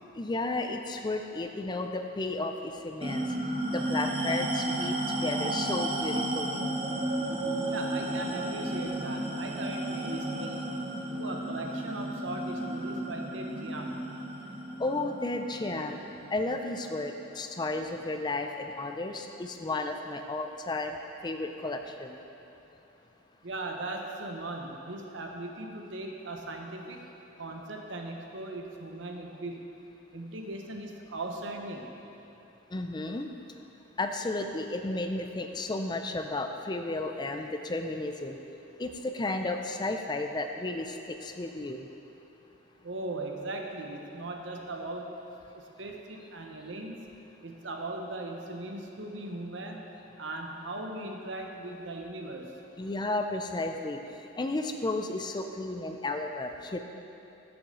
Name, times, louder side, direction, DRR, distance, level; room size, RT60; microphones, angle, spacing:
voice 1, 0.2-3.2 3.7-6.6 14.8-16.0 16.3-21.0 21.2-22.2 32.7-33.3 34.0-38.4 38.8-41.0 41.2-41.8 52.8-54.0 54.3-56.8, left 2 dB, 20° left, 6 dB, 0.4 m, -33 dB
sound 1, 3.0-17.8, right 1 dB, 30° right, 0.9 m, -33 dB
voice 2, 7.7-10.6 11.1-14.0 23.4-27.0 27.4-29.6 30.1-31.9 42.8-45.1 45.5-47.0 47.4-49.9 50.2-52.6, right 2 dB, 65° right, 2 dB, 1.0 m, -38 dB
14.0 x 7.0 x 3.8 m, 2.9 s
head